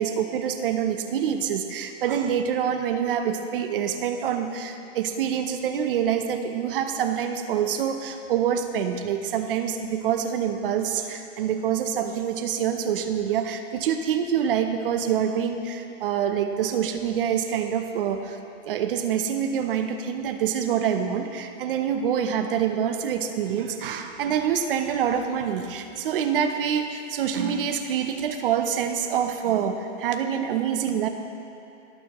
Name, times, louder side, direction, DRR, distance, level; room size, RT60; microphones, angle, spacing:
voice 1, 0.0-18.4 18.6-31.1, right 8 dB, 45° right, 7 dB, 0.8 m, -26 dB
18.5 x 6.4 x 3.0 m, 2.8 s
supercardioid pair, 170°, 37 cm